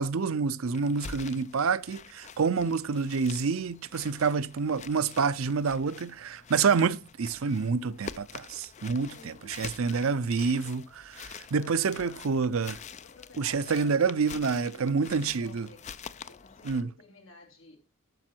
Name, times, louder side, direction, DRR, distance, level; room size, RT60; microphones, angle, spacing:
voice 1, 0.0-12.8 13.4-15.7 16.6-16.9, right 5 dB, 75° right, 0.5 m, -28 dB
sound 1, 0.7-16.8, left 6 dB, 35° left, 0.5 m, -46 dB
voice 2, 4.0-4.4 9.0-10.1 11.6-12.3 13.0-15.9 16.3-17.8, left 3 dB, 65° left, 3.2 m, -53 dB
12.0 x 6.9 x 4.4 m
head